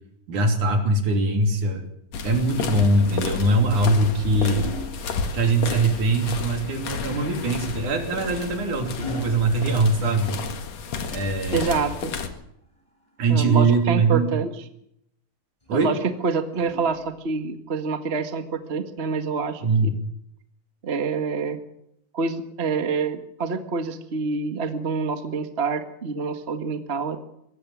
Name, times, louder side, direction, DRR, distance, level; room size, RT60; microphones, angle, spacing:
voice 1, 0.3-1.8 2.2-4.7 5.3-10.4 11.1-11.8 13.2-14.3 15.7-15.9 19.6-20.0, right 2 dB, 70° right, 4 dB, 4.6 m, -22 dB
sound 1, 2.1-12.3, left 5 dB, 55° left, 2.8 m, -32 dB
sound 2, 3.5-5.9 7.5-10.7 12.5-13.6 15.6-17.4 18.7-18.9, left 1 dB, 10° left, 4.2 m, -43 dB
voice 2, 11.5-12.1 13.3-14.5 15.7-16.0 16.2-19.9 20.8-21.6 22.1-27.2, right 4 dB, 30° right, 7 dB, 1.1 m, -27 dB
22.5 x 18.0 x 7.4 m, 0.75 s
omnidirectional pair, 3.7 m